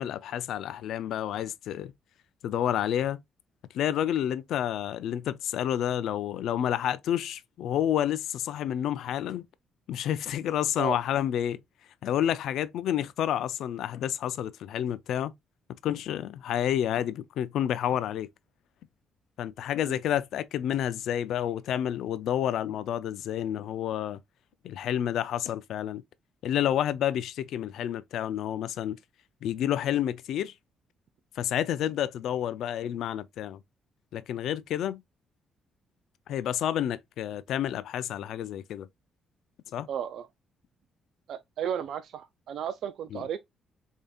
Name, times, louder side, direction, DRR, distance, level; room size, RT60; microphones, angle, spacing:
voice 1, 0.0-1.9 2.4-3.2 3.7-9.5 9.9-11.6 12.0-15.3 15.8-18.3 19.4-24.2 24.6-26.0 26.4-29.0 29.4-30.5 31.4-33.6 34.1-35.0 36.3-38.9 39.7-39.9 43.1-43.2, left 10 dB, 80° left, 0.4 m, -29 dB
voice 2, 39.9-40.3 41.3-43.4, right 9 dB, 70° right, 0.3 m, -34 dB
4.9 x 2.7 x 2.3 m
cardioid pair, 90°, 0 cm